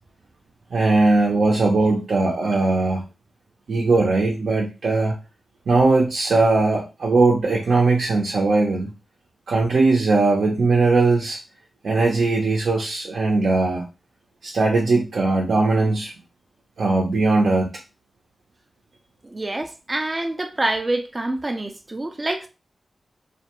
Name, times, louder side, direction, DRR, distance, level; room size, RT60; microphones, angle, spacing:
voice 1, 0.7-3.0 3.7-5.1 5.7-8.9 9.5-11.4 11.8-13.9 14.4-16.1 16.8-17.7, right 3 dB, 80° right, 0.6 m, -19 dB
voice 2, 19.2-22.5, right 2 dB, 25° right, 0.4 m, -26 dB
2.3 x 2.2 x 2.9 m
wide cardioid pair, 85°, 0 cm